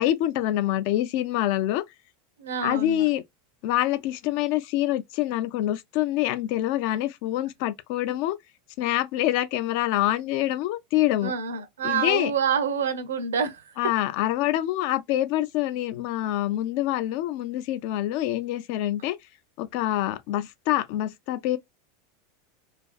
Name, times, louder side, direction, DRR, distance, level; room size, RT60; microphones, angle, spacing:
voice 1, 0.0-1.8 2.6-3.2 3.6-8.4 8.8-11.3 11.8-12.3 13.8-19.2 19.6-21.6, left 14 dB, 55° left, 0.3 m, -26 dB
voice 2, 2.4-3.1 11.2-13.6, right 6 dB, 75° right, 0.5 m, -27 dB
2.5 x 2.3 x 2.3 m
figure-of-eight pair, 85°, 0 cm